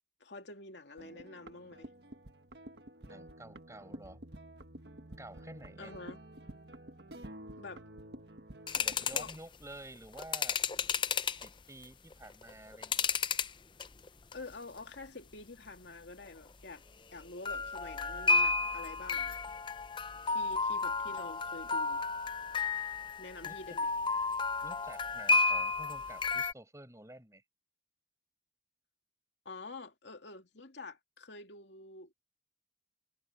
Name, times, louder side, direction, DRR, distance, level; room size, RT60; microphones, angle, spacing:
voice 1, 0.2-1.9 5.8-6.2 7.6-7.8 9.1-9.3 14.3-16.8 17.1-19.3 20.3-22.0 23.2-23.9 29.4-32.2, left 3 dB, 80° left, 2.6 m, -47 dB
sound 1, 1.0-9.3, right 1 dB, 70° right, 1.6 m, -50 dB
voice 2, 3.0-4.2 5.2-5.9 8.8-10.6 11.4-13.1 23.4-23.6 24.6-27.4, right 1 dB, 15° right, 6.1 m, -50 dB
sound 2, 8.7-9.3 10.1-11.5 12.1-13.5 13.8-14.3 14.8-14.9 17.4-26.5, left 4 dB, 25° left, 0.6 m, -32 dB
head